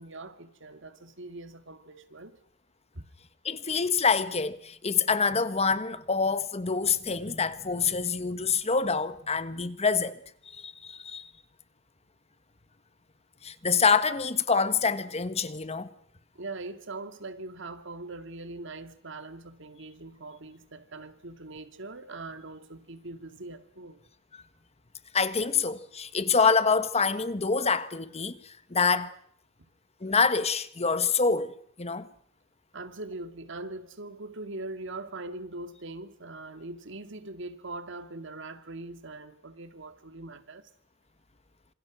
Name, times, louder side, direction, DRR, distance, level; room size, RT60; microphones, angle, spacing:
voice 1, 0.0-2.4 2.9-3.1 16.4-24.0 32.7-40.7, right 2 dB, 65° right, 2.1 m, -41 dB
voice 2, 3.4-10.2 10.5-11.3 13.4-15.9 24.3-24.4 25.1-29.1 30.0-32.1, left 5 dB, 30° left, 1.4 m, -26 dB
28.0 x 27.0 x 6.2 m
head